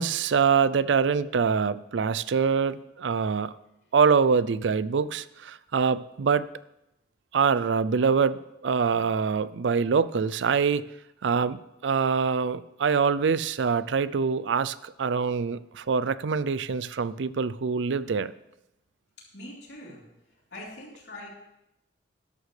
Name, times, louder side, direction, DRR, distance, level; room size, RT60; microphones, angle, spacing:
voice 1, 0.0-3.6 3.9-6.5 7.3-10.8 11.2-18.3, right 5 dB, 75° right, 17 dB, 0.4 m, -24 dB
voice 2, 19.3-20.0 20.5-21.3, left 1 dB, 60° left, -4 dB, 3.7 m, -42 dB
13.0 x 11.0 x 3.3 m, 0.89 s
head